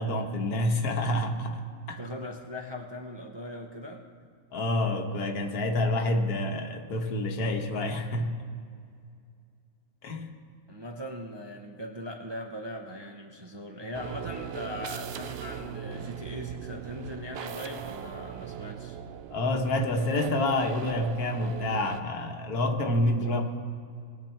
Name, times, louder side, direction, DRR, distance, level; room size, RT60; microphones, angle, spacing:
voice 1, 0.0-2.0 4.5-8.3 10.0-10.3 19.3-23.4, left 1 dB, 85° left, 4 dB, 1.6 m, -28 dB
voice 2, 2.0-4.0 10.7-19.0 23.1-23.5, left 1 dB, 25° right, 2 dB, 0.5 m, -40 dB
sound 1, 13.9-22.0, right 8 dB, 75° right, 0.6 m, -40 dB
19.5 x 7.1 x 4.5 m, 2.3 s
omnidirectional pair, 1.6 m